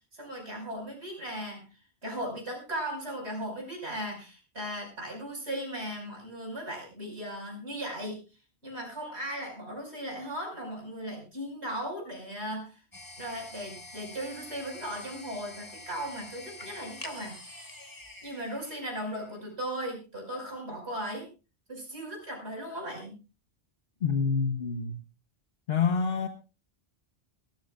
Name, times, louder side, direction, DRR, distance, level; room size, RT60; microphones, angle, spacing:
voice 1, 0.1-1.6 2.0-8.2 8.6-12.8 13.2-17.7 18.2-21.3 21.7-23.2, equal, 85° right, 1 dB, 5.8 m, -37 dB
sound 1, 12.9-19.5, left 2 dB, 20° left, 1.4 m, -46 dB
voice 2, 24.0-25.0 25.7-26.3, left 5 dB, 70° left, 7 dB, 1.2 m, -27 dB
22.5 x 13.5 x 2.4 m, 0.31 s
omnidirectional pair, 1.1 m